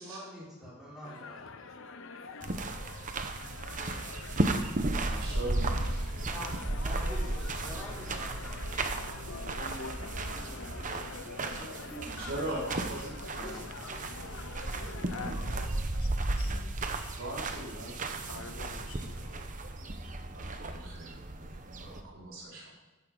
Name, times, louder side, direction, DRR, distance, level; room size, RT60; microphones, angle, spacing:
voice 1, 0.0-1.8 6.3-8.9 11.6-12.5 13.4-14.0, equal, ahead, -9 dB, 4.7 m, -46 dB
sound 1, 1.0-15.7, left 4 dB, 60° left, 0.8 m, -46 dB
sound 2, 2.4-22.0, right 2 dB, 35° right, 0.9 m, -34 dB
sound 3, 2.5-3.1 3.8-4.5 5.6-6.2 7.0-7.4 7.8-7.9 8.8-9.3 9.6-9.8 10.5-11.4 11.9-13.0 13.8-15.0 15.3-16.1 17.0-17.3 17.7-18.1 18.7-19.5 19.7-20.3, right 1 dB, 85° right, 2.6 m, -57 dB
voice 2, 5.0-6.0 12.2-13.4 13.7-13.8 17.2-18.4 20.3-21.5 21.8-22.7, right 1 dB, 60° right, -7 dB, 5.3 m, -40 dB
voice 3, 9.3-11.7 13.2-13.7 14.7-17.1 18.2-19.9, left 3 dB, 80° left, 5 dB, 1.6 m, -47 dB
14.5 x 11.0 x 4.0 m, 1.1 s
head